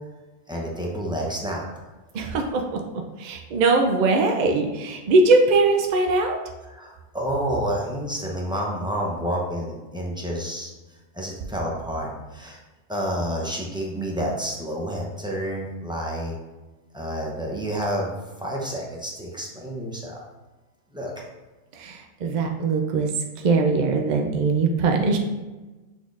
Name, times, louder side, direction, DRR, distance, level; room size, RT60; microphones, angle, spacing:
voice 1, 0.5-1.6 6.7-12.6 12.9-16.4 16.9-18.1 18.4-20.2 20.9-21.1, equal, 5° right, -2 dB, 0.5 m, -29 dB
voice 2, 2.1-6.4 21.7-23.1 23.4-25.2, right 3 dB, 65° right, 3 dB, 0.4 m, -21 dB
6.1 x 3.6 x 2.5 m, 1.2 s
omnidirectional pair, 1.3 m